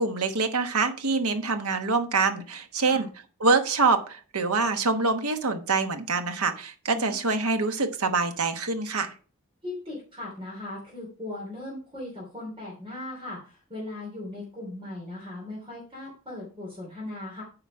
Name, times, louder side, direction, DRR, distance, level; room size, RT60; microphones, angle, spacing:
voice 1, 0.0-3.1 3.4-9.1, right 4 dB, 90° right, 7 dB, 1.1 m, -25 dB
voice 2, 9.6-17.4, left 2 dB, 25° right, -5 dB, 3.0 m, -38 dB
9.0 x 4.9 x 4.6 m, 0.38 s
head